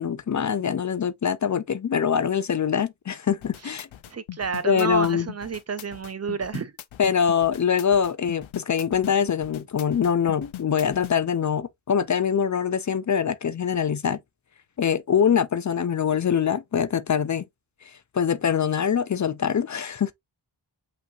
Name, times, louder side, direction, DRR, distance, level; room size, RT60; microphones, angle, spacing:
voice 1, 0.0-3.9 4.6-5.3 7.0-14.2 14.8-17.4 18.1-20.1, left 7 dB, 40° left, 0.5 m, -24 dB
sound 1, 3.3-11.1, left 14 dB, 90° left, 0.6 m, -40 dB
voice 2, 4.1-6.7, right 5 dB, 35° right, 0.5 m, -30 dB
5.7 x 3.0 x 2.6 m
cardioid pair, 65°, 46 cm